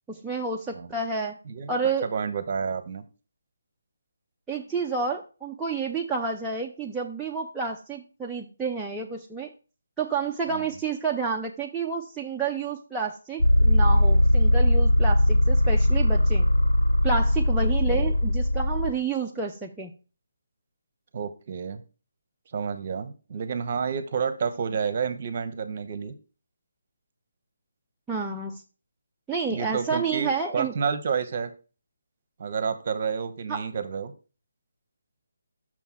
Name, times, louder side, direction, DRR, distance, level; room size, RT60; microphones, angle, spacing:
voice 1, 0.1-1.4 1.7-2.1 4.5-9.5 10.0-16.5 17.0-19.9 28.1-28.6 29.3-30.7 33.5-33.6, right 5 dB, 5° right, -3 dB, 0.4 m, -30 dB
voice 2, 1.5-3.0 10.5-10.6 17.9-18.1 21.1-21.8 22.5-26.1 29.5-31.5 32.4-34.1, right 6 dB, 40° right, 11 dB, 0.8 m, -30 dB
sound 1, 13.4-18.9, left 1 dB, 75° left, 0.5 m, -20 dB
6.1 x 3.5 x 6.0 m, 0.34 s
figure-of-eight pair, 150°, 0 cm